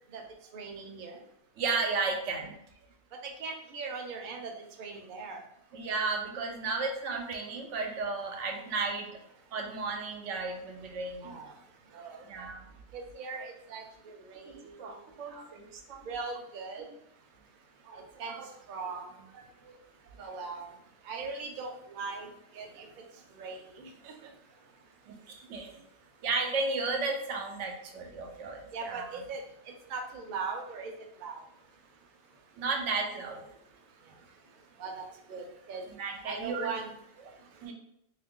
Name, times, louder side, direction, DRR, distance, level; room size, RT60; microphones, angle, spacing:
voice 1, 0.5-1.2 3.2-5.4 11.2-11.5 11.9-12.5 12.9-14.7 15.3-15.5 16.0-16.8 17.9-19.2 20.2-20.7 21.0-23.0 23.3-24.3 28.7-30.9 31.2-31.4 34.8-35.9 36.2-36.9 37.6-37.7, right 4 dB, 55° right, 2 dB, 0.6 m, -40 dB
voice 2, 1.6-2.6 5.7-9.1 9.5-11.4 12.2-12.6 14.5-16.0 17.8-18.5 19.6-19.7 25.1-25.8 26.2-29.1 32.6-33.5 35.9-36.7 37.3-37.7, right 4 dB, 90° right, 3 dB, 0.9 m, -34 dB
2.8 x 2.5 x 3.6 m, 0.76 s
omnidirectional pair, 1.2 m